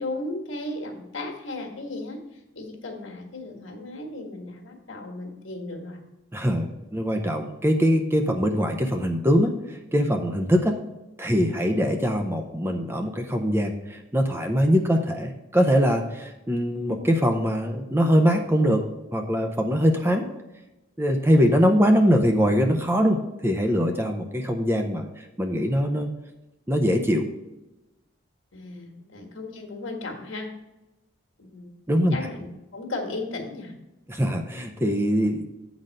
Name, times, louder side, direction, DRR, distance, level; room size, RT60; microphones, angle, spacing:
voice 1, 0.0-2.2 2.6-6.0 28.5-30.5 31.4-31.7 32.1-32.5 32.7-33.7, left 2 dB, 70° left, 1 dB, 1.6 m, -35 dB
voice 2, 6.3-10.8 11.2-18.9 19.1-20.2 21.0-26.1 26.7-27.2 31.9-32.2 34.1-35.4, equal, 10° right, 4 dB, 0.6 m, -22 dB
8.7 x 4.1 x 6.5 m, 1.0 s
head